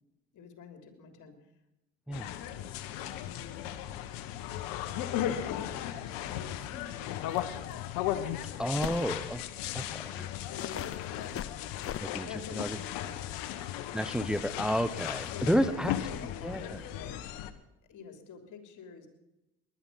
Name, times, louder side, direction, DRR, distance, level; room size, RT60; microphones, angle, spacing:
voice 1, 0.3-1.4 2.1-3.7 5.3-7.7 10.5-11.7 12.2-13.4 15.3-17.3 17.9-19.1, left 5 dB, 65° left, 6 dB, 3.4 m, -47 dB
sound 1, 2.1-17.5, left 11 dB, 80° left, 1.3 m, -36 dB
sound 2, 7.3-7.5 7.7-7.8 8.8-9.1 9.9-10.0 10.5-12.0, left 10 dB, 45° left, 0.7 m, -39 dB
voice 2, 8.6-9.4 9.7-10.3 12.0-12.3 12.5-12.8 13.9-15.9 16.4-16.8, equal, ahead, 12 dB, 1.0 m, -31 dB
19.5 x 11.5 x 5.8 m, 0.98 s
supercardioid pair, 65°, 33 cm